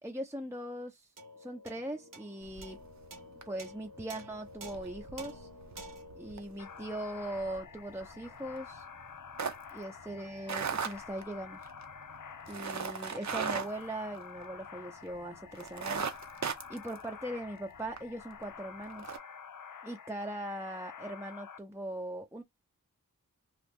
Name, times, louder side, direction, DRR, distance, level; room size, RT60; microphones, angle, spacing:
voice 1, 0.0-1.1 1.4-2.8 3.5-5.5 6.1-8.8 9.7-11.6 12.5-16.0 16.7-19.2 19.8-22.4, right 1 dB, 10° right, 0.6 m, -40 dB
sound 1, 1.2-7.8, equal, 75° right, 1.1 m, -50 dB
sound 2, 2.4-3.1 3.4-3.7 4.0-14.8 15.1-15.2 15.5-18.0 18.4-18.5 18.9-19.2, right 6 dB, 60° right, 0.7 m, -39 dB
sound 3, 6.6-21.6, left 7 dB, 70° left, 0.6 m, -49 dB
2.9 x 2.4 x 3.5 m
wide cardioid pair, 65°, 32 cm